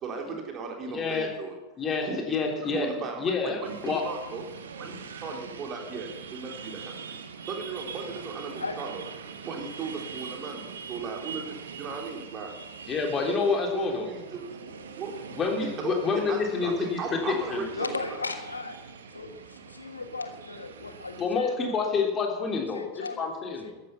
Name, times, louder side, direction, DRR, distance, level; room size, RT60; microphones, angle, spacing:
voice 1, 0.0-1.5 2.0-2.4 2.7-4.4 4.8-7.2 7.5-9.0 9.5-12.5 13.3-15.2 15.6-18.2, right 4 dB, 30° right, 2 dB, 3.3 m, -37 dB
voice 2, 0.9-1.3 1.8-2.9 3.2-4.1 12.9-14.1 15.4-17.7 21.2-23.8, left 5 dB, 25° left, 2 dB, 3.3 m, -28 dB
sound 1, 3.6-21.2, right 6 dB, 65° right, 1.4 m, -43 dB
voice 3, 17.7-18.8 19.1-22.0 22.7-23.3 23.6-23.7, left 3 dB, 80° left, 8 dB, 1.4 m, -36 dB
14.0 x 10.5 x 7.1 m, 1.1 s
figure-of-eight pair, 90°, 0 cm